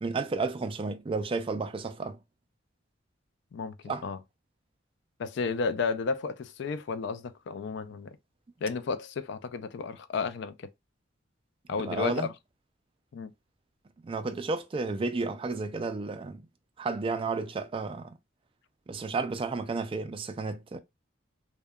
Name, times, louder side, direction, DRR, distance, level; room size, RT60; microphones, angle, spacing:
voice 1, 0.0-2.2 3.9-4.0 11.8-12.3 14.0-16.5 16.8-18.1 18.9-20.8, right 3 dB, 30° right, 0.3 m, -32 dB
voice 2, 3.5-4.2 5.2-8.1 8.6-10.7 11.7-12.3 13.1-13.3, left 4 dB, 65° left, 0.3 m, -32 dB
2.7 x 2.2 x 2.2 m
head